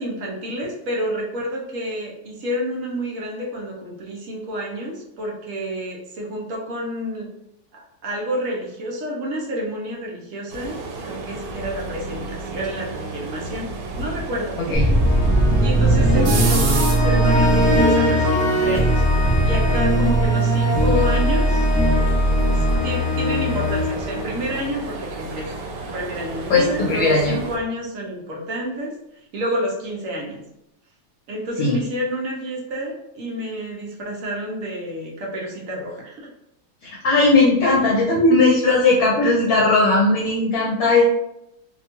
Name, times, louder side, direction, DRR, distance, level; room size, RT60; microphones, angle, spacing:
voice 1, 0.0-7.3 7.7-10.8 11.0-14.8 15.6-21.6 22.5-25.5 25.8-28.9 29.3-30.4 31.3-36.3, equal, 65° right, -2 dB, 0.9 m, -29 dB
sound 1, 10.5-27.6, right 3 dB, 85° right, 1.2 m, -32 dB
sound 2, 14.7-24.9, equal, 20° left, 0.4 m, -18 dB
voice 2, 26.5-27.4 31.6-31.8 36.8-41.0, left 3 dB, 65° left, -4 dB, 1.0 m, -17 dB
2.9 x 2.2 x 2.8 m, 0.84 s
omnidirectional pair, 1.8 m